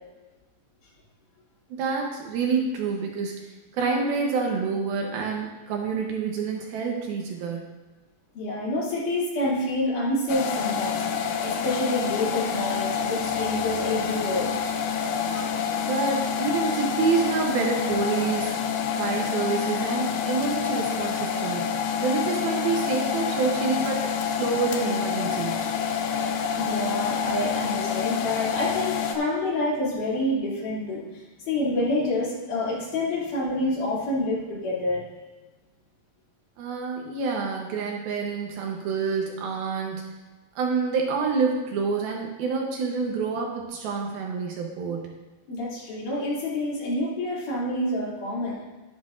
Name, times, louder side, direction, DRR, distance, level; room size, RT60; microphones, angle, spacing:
voice 1, 1.7-3.4 3.7-7.7 15.8-18.7 19.0-25.7 36.6-40.1 40.6-45.1, right 5 dB, 75° right, 0 dB, 2.5 m, -27 dB
voice 2, 8.4-14.6 15.3-15.5 26.5-35.0 45.5-48.6, left 1 dB, 55° left, -6 dB, 4.0 m, -28 dB
sound 1, 10.3-29.2, left 7 dB, 75° left, 2.4 m, -27 dB
11.0 x 11.0 x 2.5 m, 1.2 s
omnidirectional pair, 4.8 m